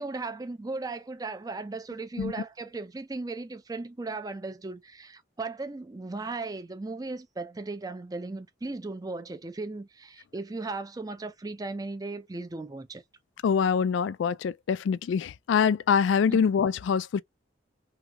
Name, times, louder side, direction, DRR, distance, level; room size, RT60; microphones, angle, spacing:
voice 1, 0.0-13.0 16.3-16.4, right 3 dB, 20° right, 0.4 m, -36 dB
voice 2, 13.4-17.2, left 6 dB, 85° left, 0.3 m, -24 dB
3.1 x 2.8 x 2.3 m
head